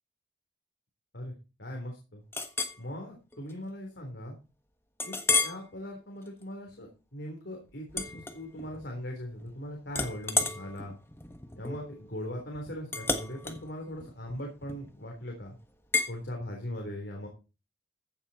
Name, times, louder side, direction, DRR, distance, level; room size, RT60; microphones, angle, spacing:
voice 1, 1.6-2.2 2.8-4.3 5.0-5.2 5.4-11.0 11.6-15.6 16.1-17.3, left 1 dB, 70° left, 1 dB, 3.6 m, -40 dB
Chink clink, 2.3-2.8 3.3-3.5 4.0-4.1 5.0-5.6 6.2-6.4 7.9-8.9 9.2-9.6 9.9-15.0 15.9-16.1, left 3 dB, 15° left, 1.3 m, -32 dB
15.0 x 8.6 x 4.2 m, 0.31 s
head